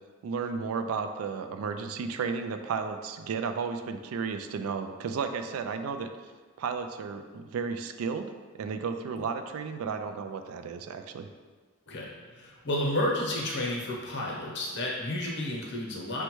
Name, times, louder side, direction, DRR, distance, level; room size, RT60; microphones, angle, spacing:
voice 1, 0.2-6.1 6.6-11.3, right 5 dB, 80° right, 8 dB, 0.3 m, -33 dB
voice 2, 12.3-16.2, left 1 dB, 55° left, -2 dB, 0.8 m, -31 dB
6.2 x 2.2 x 3.0 m, 1.5 s
head